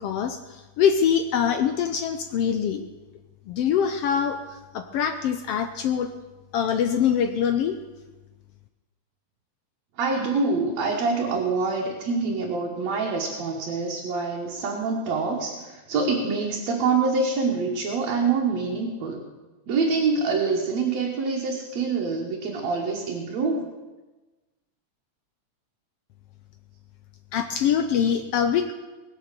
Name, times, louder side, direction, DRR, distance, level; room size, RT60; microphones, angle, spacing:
voice 1, 0.0-2.9 3.5-4.4 4.7-6.1 6.5-7.7 27.3-28.7, left 8 dB, 75° left, 8 dB, 1.4 m, -24 dB
voice 2, 10.0-19.2 19.7-23.6, right 4 dB, 65° right, -2 dB, 2.5 m, -25 dB
20.0 x 7.7 x 6.7 m, 1.2 s
omnidirectional pair, 3.4 m